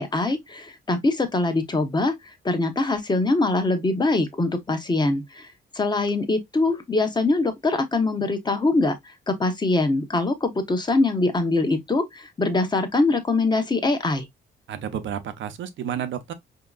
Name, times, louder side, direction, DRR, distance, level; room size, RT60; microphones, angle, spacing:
voice 1, 0.0-14.3, left 2 dB, 20° left, 1.1 m, -23 dB
voice 2, 14.7-16.3, right 9 dB, 70° right, 0.8 m, -31 dB
5.0 x 2.9 x 2.3 m
cardioid pair, 90°, 20 cm